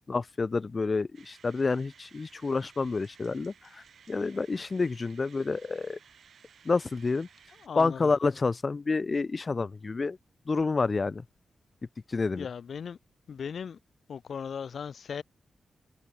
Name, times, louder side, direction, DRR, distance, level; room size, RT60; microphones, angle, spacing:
voice 1, 0.1-6.0 6.7-7.3 7.8-10.2 10.5-11.2 12.1-12.5, left 4 dB, 35° left, 0.5 m, -29 dB
sound 1, 1.1-7.7, right 7 dB, 75° right, 6.9 m, -57 dB
voice 2, 7.6-8.1 12.4-13.0 13.3-13.8 14.1-15.2, left 7 dB, 70° left, 4.9 m, -37 dB
wide cardioid pair, 100°, 0 cm